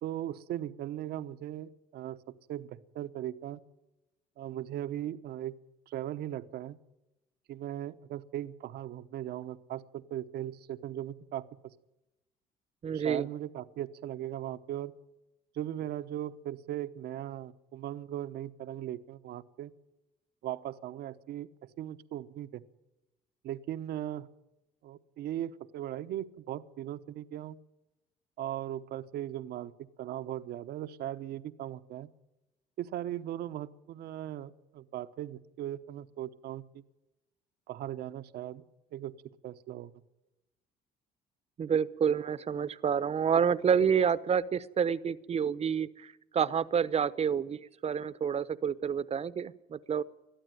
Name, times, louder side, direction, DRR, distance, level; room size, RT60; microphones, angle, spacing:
voice 1, 0.0-2.2 2.5-3.6 4.4-5.5 5.9-6.8 7.5-11.4 12.9-14.9 15.5-19.7 20.4-21.5 21.8-22.6 23.4-24.3 24.8-27.6 28.4-29.7 30.0-32.1 32.8-36.8 37.7-38.6 38.9-39.1 39.4-39.9, right 12 dB, 75° right, 10 dB, 1.0 m, -38 dB
voice 2, 12.8-13.3 41.6-50.0, right 7 dB, 40° right, 15 dB, 0.9 m, -29 dB
22.0 x 13.5 x 9.2 m, 0.97 s
cardioid pair, 110°, 17 cm